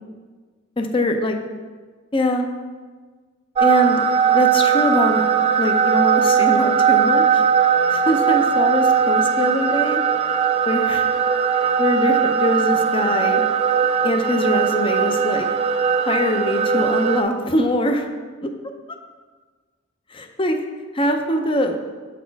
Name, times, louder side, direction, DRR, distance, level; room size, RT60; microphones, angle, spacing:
voice 1, 0.8-1.4 2.1-2.5 3.6-4.0 4.3-5.2 5.6-7.4 7.9-10.0 10.7-11.1 11.8-13.4 14.0-15.5 16.1-18.1 18.4-18.5 20.1-20.6 20.9-21.8, left 1 dB, 25° left, 5 dB, 0.6 m, -22 dB
sound 1, 3.6-17.2, right 7 dB, 30° right, 0.3 m, -19 dB
7.2 x 4.2 x 4.6 m, 1.4 s
head